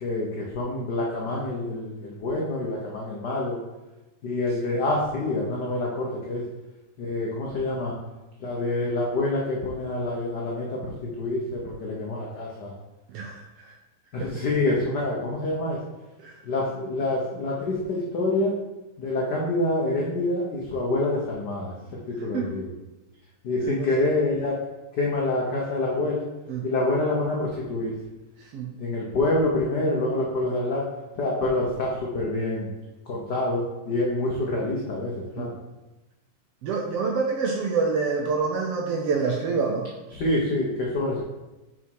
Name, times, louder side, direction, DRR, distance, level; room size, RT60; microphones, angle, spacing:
voice 1, 0.0-3.6 4.2-6.4 7.0-8.0 8.4-12.7 14.1-15.8 16.4-18.6 19.0-22.7 23.4-24.5 24.9-26.2 26.6-27.9 28.8-30.8 31.2-32.7 33.1-35.5 40.1-41.2, left 2 dB, 75° left, -3 dB, 0.9 m, -27 dB
voice 2, 13.1-13.7 14.2-14.3 16.2-16.3 22.3-22.6 23.6-24.0 26.5-26.7 28.5-28.7 35.4-35.5 36.6-39.9, right 4 dB, 70° right, 2 dB, 1.5 m, -27 dB
6.0 x 5.8 x 4.7 m, 1.0 s
omnidirectional pair, 3.3 m